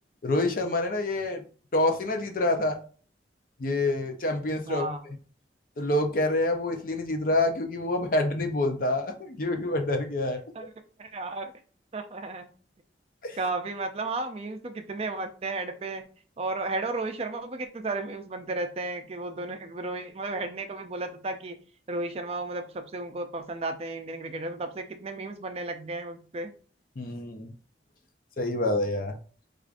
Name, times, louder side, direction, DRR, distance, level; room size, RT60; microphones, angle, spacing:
voice 1, 0.2-1.4 1.7-2.8 3.6-5.2 5.8-10.4 13.2-13.4 27.0-27.5 28.4-29.2, left 2 dB, 50° left, 5 dB, 0.6 m, -27 dB
voice 2, 4.6-5.0 10.6-10.7 11.0-11.5 11.9-12.5 13.4-16.0 16.4-21.6 21.9-26.5, right 2 dB, 35° right, 6 dB, 0.4 m, -33 dB
4.7 x 2.4 x 2.4 m, 0.40 s
head